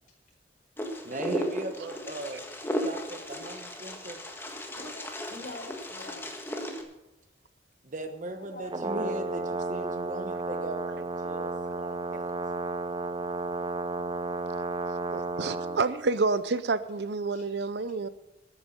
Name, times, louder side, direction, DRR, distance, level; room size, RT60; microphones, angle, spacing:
Wind, 0.8-6.8, equal, 15° left, 1.6 m, -35 dB
voice 1, 1.0-4.2 7.8-12.3, right 2 dB, 45° right, 7 dB, 1.2 m, -38 dB
voice 2, 4.7-6.2 8.0-8.1 8.4-9.1 15.5-15.8 17.3-17.5, left 2 dB, 45° left, 1 dB, 4.4 m, -45 dB
Brass instrument, 8.6-15.8, right 2 dB, 30° right, 0.7 m, -32 dB
voice 3, 15.1-18.1, right 3 dB, 65° right, 14 dB, 0.7 m, -29 dB
13.5 x 9.2 x 7.0 m, 0.94 s
head